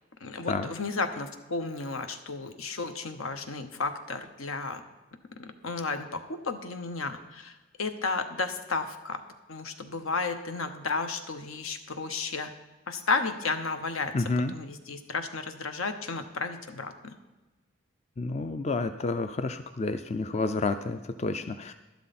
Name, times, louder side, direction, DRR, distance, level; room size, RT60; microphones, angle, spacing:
voice 1, 0.2-4.8 5.4-9.2 9.5-12.5 12.9-14.1 14.5-17.2, left 4 dB, 80° left, 8 dB, 1.1 m, -33 dB
voice 2, 14.1-14.5 18.2-21.7, left 3 dB, 30° left, 9 dB, 0.4 m, -30 dB
12.0 x 11.5 x 4.2 m, 1.2 s
head